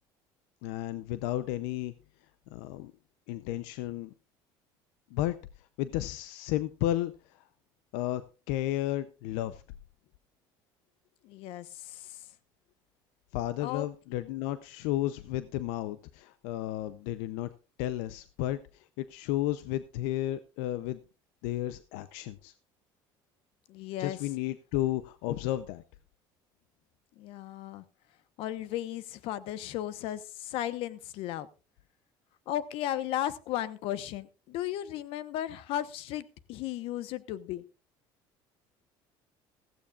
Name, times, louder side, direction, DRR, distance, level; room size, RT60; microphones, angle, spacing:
voice 1, 0.6-1.9 2.5-2.9 3.3-4.1 5.1-5.3 5.8-7.1 7.9-8.2 8.5-9.6 13.3-17.5 17.8-18.6 19.0-21.0 21.4-22.5 24.0-25.8, left 14 dB, 90° left, 13 dB, 0.6 m, -32 dB
voice 2, 11.2-12.1 13.6-13.9 23.7-24.2 27.2-27.8 28.4-31.5 32.5-37.6, left 12 dB, 70° left, 14 dB, 1.0 m, -35 dB
15.5 x 15.5 x 2.4 m, 0.32 s
cardioid pair, 125°, 10 cm